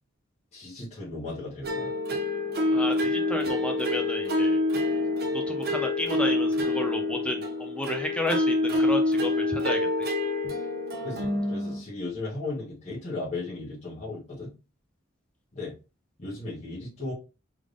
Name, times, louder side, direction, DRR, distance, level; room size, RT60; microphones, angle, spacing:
voice 1, 0.5-1.9 11.0-14.5 15.5-15.7 16.2-17.1, left 2 dB, 30° left, -9 dB, 1.3 m, -36 dB
sound 1, 1.6-11.8, left 2 dB, 50° right, 0.8 m, -26 dB
voice 2, 2.7-4.6 5.3-10.1, left 1 dB, 5° left, 3 dB, 0.6 m, -32 dB
3.6 x 3.3 x 2.5 m, 0.30 s
head